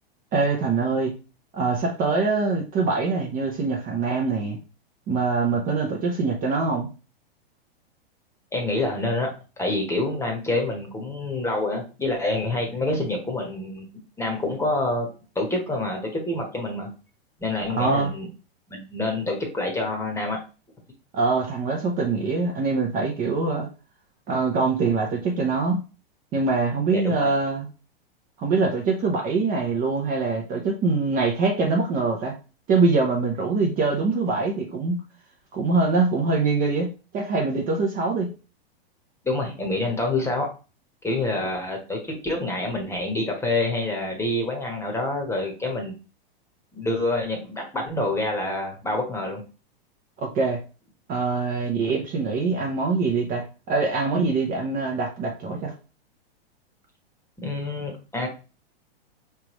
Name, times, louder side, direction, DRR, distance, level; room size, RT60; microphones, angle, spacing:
voice 1, 0.3-1.1 1.5-4.6 5.1-6.9 17.7-18.1 21.1-23.7 24.3-25.8 26.3-27.7 28.4-32.3 32.7-35.0 35.5-36.9 37.1-38.3 50.2-50.6 51.1-55.7, right 4 dB, 30° right, 1 dB, 0.8 m, -23 dB
voice 2, 8.5-13.9 14.2-15.1 15.3-16.9 17.4-18.3 18.7-20.4 26.9-27.3 39.2-40.5 41.0-46.0 46.7-49.4 57.4-58.3, left 2 dB, 10° left, 2 dB, 1.2 m, -27 dB
4.9 x 3.4 x 3.0 m, 0.33 s
hypercardioid pair, 130°, 31 cm